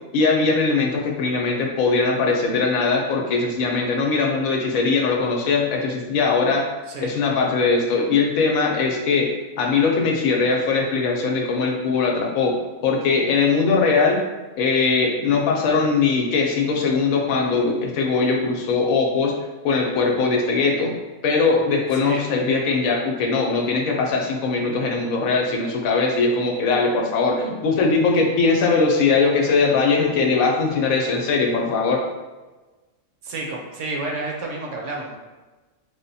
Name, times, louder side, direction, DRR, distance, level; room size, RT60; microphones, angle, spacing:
voice 1, 0.1-6.6 7.0-9.3 9.6-12.6 12.8-14.2 14.6-19.3 19.6-21.0 21.2-32.0, left 4 dB, 85° left, 1 dB, 1.1 m, -20 dB
voice 2, 33.2-35.2, right 2 dB, 70° right, 0 dB, 0.9 m, -30 dB
3.3 x 2.1 x 4.0 m, 1.2 s
omnidirectional pair, 1.4 m